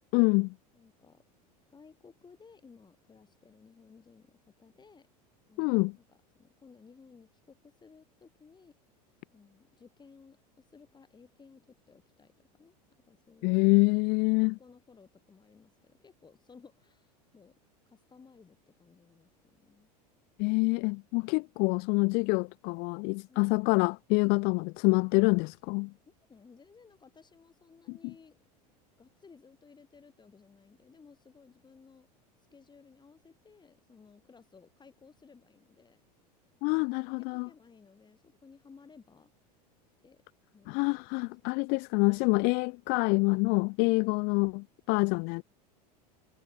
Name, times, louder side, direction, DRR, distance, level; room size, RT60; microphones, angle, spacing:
voice 1, 0.1-0.5 5.6-5.9 13.4-14.6 20.4-25.9 27.9-28.1 36.6-37.5 40.7-45.4, left 31 dB, 50° left, 0.4 m, -26 dB
voice 2, 0.7-1.2 1.7-5.1 5.5-8.8 9.3-12.8 13.0-13.7 14.3-17.5 17.8-19.9 23.3-23.6 26.3-28.4 29.0-32.1 32.4-36.0 37.2-39.3 40.0-40.2 40.5-40.9 43.8-44.2, left 5 dB, 20° left, 8.0 m, -58 dB
hypercardioid pair, 95°, 21 cm